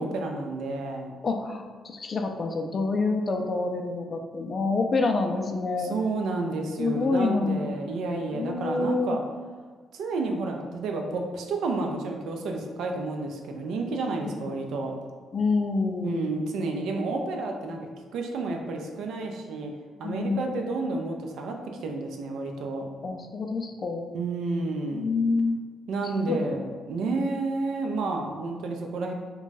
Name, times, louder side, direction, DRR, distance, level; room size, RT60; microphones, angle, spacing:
voice 1, 0.0-1.1 5.8-9.2 9.9-14.9 16.0-19.7 20.0-21.6 21.8-22.8 24.1-25.0 25.9-29.1, right 3 dB, 80° right, 2 dB, 0.4 m, -30 dB
voice 2, 1.2-6.0 6.8-7.7 8.3-9.2 14.4-14.6 15.3-16.3 17.7-17.8 20.0-20.5 23.0-24.2 24.9-25.6 26.2-26.5 27.1-27.3, left 3 dB, 40° left, 4 dB, 0.3 m, -27 dB
2.5 x 2.2 x 3.2 m, 1.5 s
cardioid pair, 90°, 0 cm